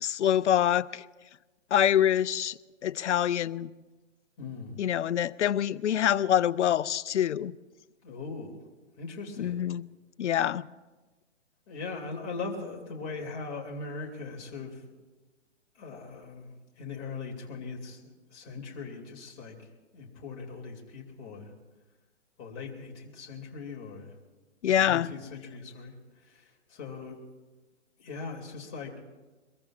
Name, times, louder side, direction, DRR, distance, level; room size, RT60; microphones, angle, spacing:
voice 1, 0.0-1.0 1.7-3.7 4.8-7.5 9.4-9.8 10.2-10.7 24.6-25.1, left 10 dB, 70° left, 0.5 m, -25 dB
voice 2, 4.4-4.8 8.0-8.5 9.0-9.6 11.7-14.8 15.8-19.5 19.9-21.5 22.4-24.1 24.7-25.9 26.3-27.2 28.0-28.9, left 4 dB, 30° left, 2.6 m, -40 dB
23.0 x 22.0 x 2.5 m
hypercardioid pair, 140°, 37 cm